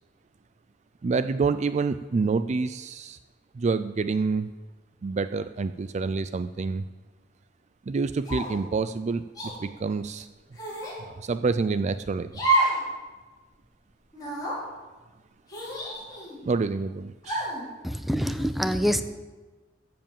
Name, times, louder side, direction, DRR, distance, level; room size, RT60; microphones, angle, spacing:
voice 1, 1.0-3.2 3.5-4.5 5.0-6.8 7.9-9.2 9.6-10.3 11.0-12.3 16.4-17.5, right 4 dB, 35° right, 12 dB, 0.4 m, -27 dB
sound 1, 8.2-8.6 9.3-9.5 10.5-11.0 12.3-12.8 13.2-13.3 14.1-14.6 15.5-16.4 17.2-17.6, right 2 dB, 20° left, 4.7 m, -28 dB
voice 2, 17.8-19.0, equal, ahead, 9 dB, 0.7 m, -25 dB
14.5 x 7.7 x 7.2 m, 1.3 s
head